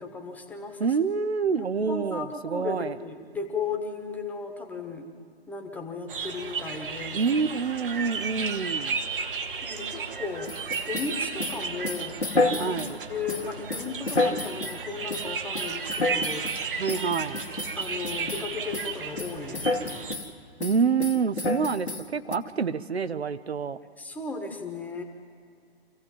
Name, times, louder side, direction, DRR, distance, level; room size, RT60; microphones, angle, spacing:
voice 1, 0.0-0.9 1.5-5.1 5.5-7.3 9.6-10.6 10.8-16.5 17.7-20.2 24.0-25.0, left 4 dB, 5° left, 4 dB, 1.2 m, -36 dB
voice 2, 0.8-3.0 7.1-9.0 12.6-13.0 16.8-17.5 20.6-23.8, right 5 dB, 75° right, 12 dB, 0.7 m, -27 dB
sound 1, 6.1-20.1, right 5 dB, 55° right, 1.6 m, -34 dB
sound 2, 10.5-12.9 13.3-14.8 15.1-15.3 15.5-16.6 16.9-18.5 18.7-18.9 19.2-20.3 20.6-22.4, left 2 dB, 85° left, 1.4 m, -29 dB
25.5 x 15.5 x 7.4 m, 2.3 s
figure-of-eight pair, 120°, 33 cm